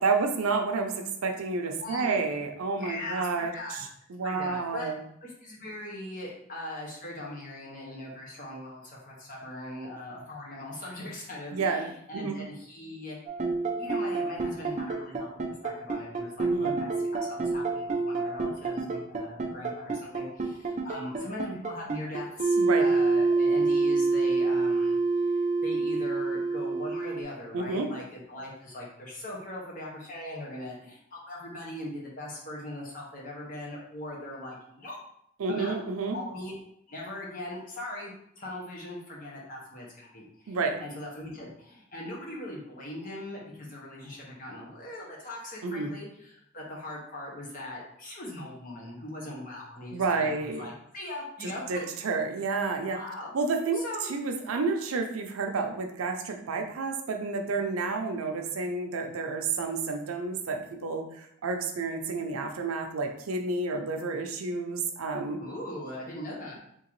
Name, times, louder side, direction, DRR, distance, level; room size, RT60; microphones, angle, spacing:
voice 1, 0.0-5.0 11.5-11.9 12.1-12.4 16.5-16.8 22.6-22.9 27.5-27.9 35.4-36.2 40.5-40.8 45.6-45.9 49.9-50.6 51.7-53.0 53.3-65.4, right 4 dB, 90° right, 4 dB, 0.5 m, -30 dB
voice 2, 1.8-2.2 2.7-3.8 4.2-4.9 5.2-13.2 13.5-15.3 15.6-35.0 35.5-35.7 36.1-36.6 36.9-51.8 52.7-53.3 53.7-54.1 65.4-66.6, left 1 dB, 40° left, -3 dB, 0.9 m, -40 dB
sound 1, 13.3-27.2, right 3 dB, 35° right, 0.4 m, -27 dB
3.7 x 2.8 x 3.0 m, 0.71 s
head